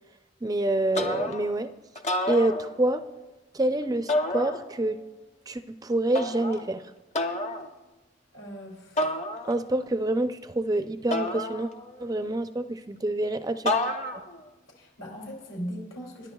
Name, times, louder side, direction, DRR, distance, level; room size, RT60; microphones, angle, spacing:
voice 1, 0.4-1.7 2.3-3.0 3.5-5.0 5.5-6.8 9.5-11.7 12.0-13.8, right 1 dB, 20° right, 10 dB, 0.4 m, -27 dB
sound 1, 0.9-1.6 2.0-3.1 4.1-5.0 6.1-6.7 7.1-7.7 9.0-9.8 11.1-12.1 13.7-14.4, left 1 dB, 35° left, 0.8 m, -30 dB
voice 2, 8.3-9.1 14.8-16.3, equal, 75° left, -2 dB, 2.9 m, -39 dB
26.0 x 11.0 x 2.3 m, 1.1 s
head